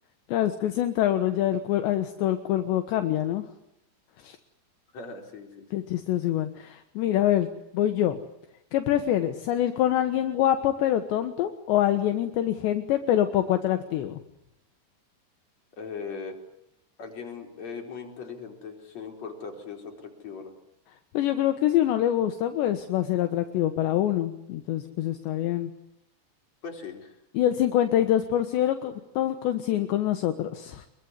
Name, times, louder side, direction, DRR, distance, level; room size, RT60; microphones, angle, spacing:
voice 1, 0.3-3.4 4.2-4.4 5.7-7.5 7.7-8.2 8.7-14.2 21.1-25.7 27.3-30.9, left 12 dB, 75° left, 8 dB, 3.4 m, -25 dB
voice 2, 4.9-5.8 15.8-16.4 17.0-20.5 26.6-27.2, left 5 dB, 35° left, 3 dB, 5.4 m, -39 dB
25.5 x 22.5 x 9.7 m, 0.84 s
omnidirectional pair, 5.4 m